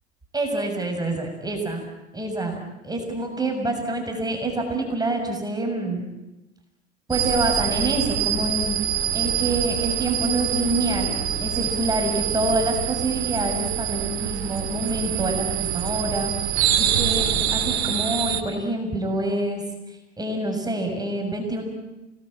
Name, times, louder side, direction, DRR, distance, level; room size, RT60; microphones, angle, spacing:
voice 1, 0.3-1.8 2.1-2.6 2.8-6.0 7.1-8.8 9.1-19.6 20.2-21.6, right 2 dB, 10° right, 3 dB, 6.7 m, -26 dB
sound 1, 7.1-18.4, right 10 dB, 70° right, 2.9 m, -25 dB
30.0 x 20.0 x 8.9 m, 1.0 s
hypercardioid pair, 90°, 33 cm